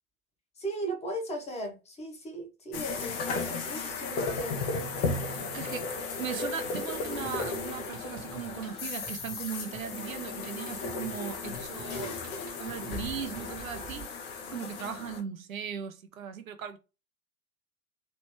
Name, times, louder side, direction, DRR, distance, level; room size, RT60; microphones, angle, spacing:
voice 1, 0.6-4.6 5.3-5.5, right 1 dB, 15° left, 1.2 m, -37 dB
sound 1, 2.7-15.2, left 4 dB, 40° left, 1.0 m, -35 dB
voice 2, 5.5-5.9 6.2-12.1 12.6-14.1 14.5-16.8, right 8 dB, 65° right, 0.8 m, -38 dB
Drum kit, 6.8-14.0, right 8 dB, 20° right, 1.1 m, -50 dB
3.2 x 3.0 x 3.1 m
figure-of-eight pair, 95°, 44 cm